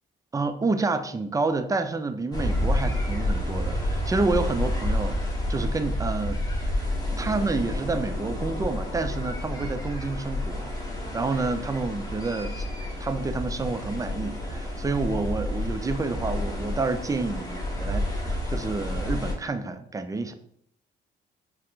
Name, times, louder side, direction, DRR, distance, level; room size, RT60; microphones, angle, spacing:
voice 1, 0.3-5.2 5.5-10.7 11.1-12.7 13.0-20.3, right 3 dB, 15° right, 10 dB, 0.4 m, -29 dB
sound 1, 2.3-19.3, left 1 dB, 20° left, 1.0 m, -29 dB
4.4 x 2.1 x 3.9 m, 0.69 s
cardioid pair, 90°, 20 cm